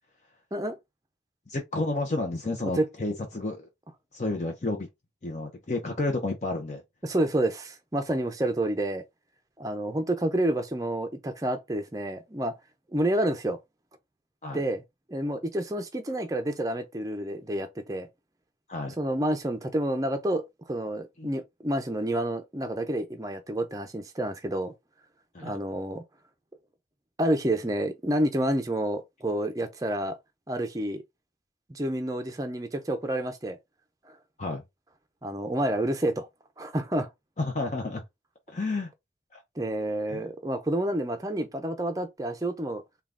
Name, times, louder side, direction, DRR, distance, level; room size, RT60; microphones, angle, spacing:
voice 1, 1.5-3.7 4.1-4.9 5.2-6.8 14.4-14.6 18.7-18.9 21.2-21.3 25.3-25.6 34.4-34.6 37.4-38.0 38.5-38.9 40.1-40.2, left 2 dB, 40° left, 0.6 m, -31 dB
voice 2, 7.0-9.0 9.6-12.5 12.9-13.6 14.5-14.8 15.1-18.1 19.0-20.4 20.7-24.7 25.4-26.0 27.2-30.2 30.5-31.0 31.7-33.6 34.1-34.2 35.2-36.3 36.6-37.1 39.6-42.8, right 1 dB, 20° right, 0.5 m, -29 dB
3.7 x 2.3 x 3.5 m
head